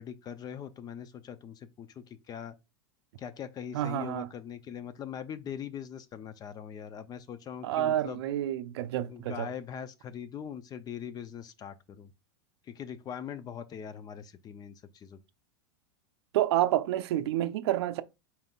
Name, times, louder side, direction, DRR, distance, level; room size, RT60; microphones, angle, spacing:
voice 1, 0.0-2.6 3.2-8.2 9.1-12.1 12.7-15.2, left 8 dB, 30° left, 0.5 m, -41 dB
voice 2, 3.7-4.3 7.6-9.5 16.3-18.0, right 13 dB, 70° right, 0.5 m, -29 dB
4.3 x 3.6 x 2.3 m
hypercardioid pair, 115°, 14 cm